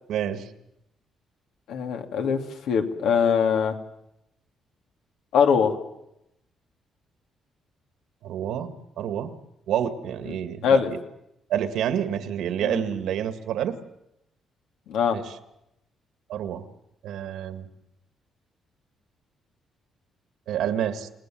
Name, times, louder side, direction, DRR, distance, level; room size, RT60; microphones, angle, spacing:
voice 1, 0.1-0.5 8.2-9.3 9.7-11.0 11.5-13.8 15.1-15.3 16.3-16.7 17.0-17.7 20.5-21.1, right 9 dB, 85° right, 9 dB, 2.0 m, -28 dB
voice 2, 1.7-2.4 2.7-3.7 5.3-5.7 10.3-10.4 10.6-10.9 12.6-12.8 14.9-15.2, left 7 dB, 90° left, 4 dB, 2.8 m, -22 dB
29.5 x 19.0 x 7.8 m, 0.83 s
cardioid pair, 135°, 0 cm